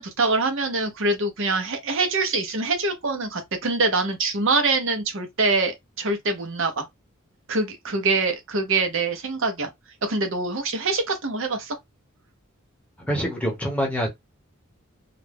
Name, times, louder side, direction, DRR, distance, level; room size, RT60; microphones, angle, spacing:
voice 1, 0.0-6.9 7.5-9.7 10.0-11.8, right 3 dB, 70° right, 0.8 m, -24 dB
voice 2, 13.0-14.1, equal, 5° left, 0.8 m, -25 dB
2.5 x 2.1 x 3.3 m
head